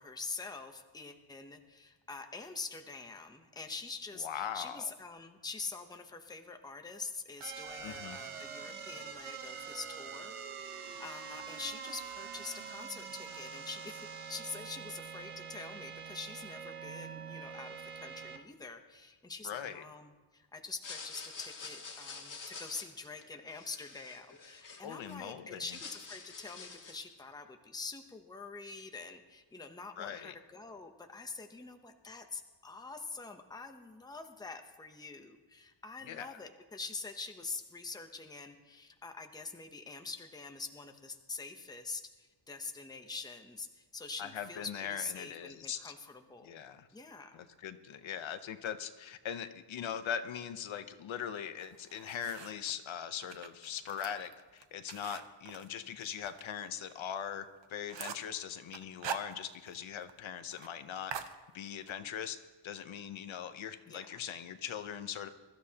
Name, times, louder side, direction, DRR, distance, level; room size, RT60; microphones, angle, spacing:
voice 1, 0.0-46.6 46.9-47.4 63.9-64.2, left 4 dB, 10° left, 5 dB, 0.7 m, -45 dB
voice 2, 4.2-4.8 7.8-8.2 19.4-19.8 24.8-25.6 30.0-30.3 36.0-36.3 44.2-45.9 46.4-46.9 47.3-61.1 61.5-62.4 62.6-65.3, left 8 dB, 70° left, 10 dB, 0.8 m, -41 dB
sound 1, 7.4-18.4, right 6 dB, 85° right, 1.1 m, -45 dB
sound 2, 20.7-25.2 25.5-27.1, left 4 dB, 40° left, 1.5 m, -47 dB
sound 3, 51.6-52.7 53.2-56.4 56.8-56.9 57.3-57.4 57.6-58.3 58.7-59.8 60.1-60.2 60.5-60.7 61.1-61.9, right 8 dB, 60° right, 0.9 m, -44 dB
22.5 x 13.5 x 2.9 m, 1.3 s
wide cardioid pair, 165°, 49 cm